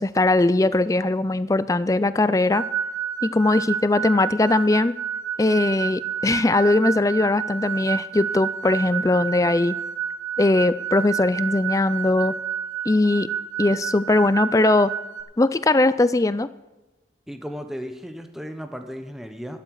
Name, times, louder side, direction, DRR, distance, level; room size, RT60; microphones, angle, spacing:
voice 1, 0.0-2.6 3.2-4.9 5.4-9.8 10.4-12.3 12.9-13.3 13.6-14.9 15.4-16.5, left 2 dB, 20° left, 16 dB, 0.4 m, -20 dB
sound 1, 2.5-15.2, right 8 dB, 90° right, 1.6 m, -30 dB
voice 2, 17.3-19.6, equal, ahead, 5 dB, 0.9 m, -35 dB
12.5 x 11.5 x 4.7 m, 1.1 s
head